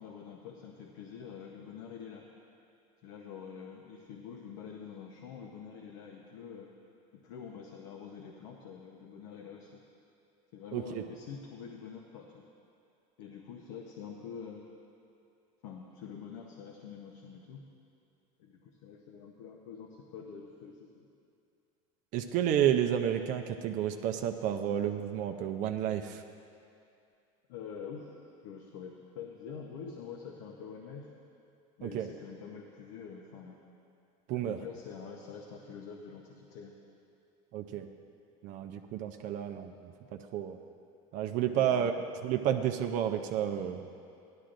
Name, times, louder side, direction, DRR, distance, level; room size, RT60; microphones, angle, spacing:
voice 1, 0.0-2.3 3.0-6.7 7.2-9.8 10.5-12.4 13.2-14.6 15.6-17.6 18.4-21.0 27.5-28.1 28.4-31.1 31.8-33.6 34.4-36.7 41.4-42.1, left 6 dB, 75° left, 1 dB, 0.8 m, -46 dB
voice 2, 10.7-11.0 22.1-26.2 31.8-32.1 34.3-34.6 37.5-37.9 38.4-39.7 40.3-40.6 41.1-41.9 42.2-43.8, right 10 dB, 50° right, 6 dB, 0.5 m, -30 dB
15.0 x 11.5 x 2.5 m, 2.6 s
supercardioid pair, 140°, 17 cm